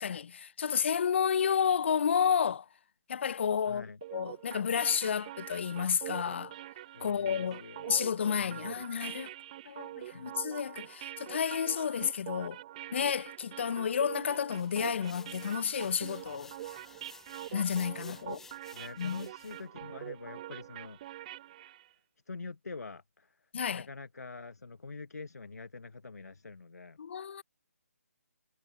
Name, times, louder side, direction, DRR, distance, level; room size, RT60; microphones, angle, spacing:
voice 1, 0.0-2.7 3.1-3.8 4.1-6.5 7.0-9.3 9.7-12.6 12.9-16.5 17.5-18.4 19.0-19.2 23.5-23.8 27.0-27.4, left 7 dB, 45° left, 0.6 m, -31 dB
voice 2, 3.6-4.0 6.9-8.0 8.3-8.8 10.1-10.3 18.2-18.4 18.7-21.3 22.3-27.0, left 4 dB, 75° left, 1.3 m, -46 dB
sound 1, 4.0-21.9, right 14 dB, 25° right, 1.0 m, -45 dB
sound 2, 14.5-19.6, left 5 dB, 5° left, 0.8 m, -54 dB
figure-of-eight pair, 150°, 9 cm